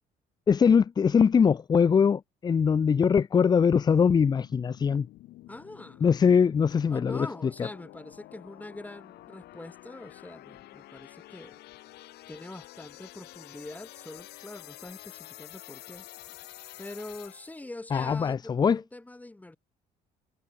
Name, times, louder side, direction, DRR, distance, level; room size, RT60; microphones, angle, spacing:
voice 1, 0.5-5.1 6.0-7.3 17.9-18.8, left 6 dB, 25° left, 0.4 m, -22 dB
sound 1, 3.7-17.7, left 16 dB, 75° left, 1.2 m, -49 dB
voice 2, 5.5-6.1 6.9-11.6 12.0-16.0 16.8-19.6, left 2 dB, 10° left, 1.8 m, -43 dB
cardioid pair, 110°, 17 cm